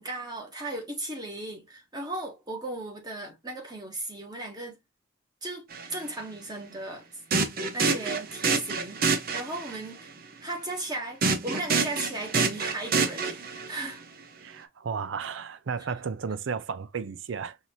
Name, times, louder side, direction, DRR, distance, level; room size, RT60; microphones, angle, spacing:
voice 1, 0.0-4.8 5.4-7.1 7.7-10.1 10.4-14.0, right 2 dB, 20° right, 1.4 m, -36 dB
sound 1, 5.7-5.9 7.3-9.8 11.2-13.8, right 4 dB, 45° right, 0.8 m, -27 dB
voice 2, 14.4-17.6, right 6 dB, 70° right, 0.4 m, -33 dB
5.5 x 2.6 x 3.0 m
head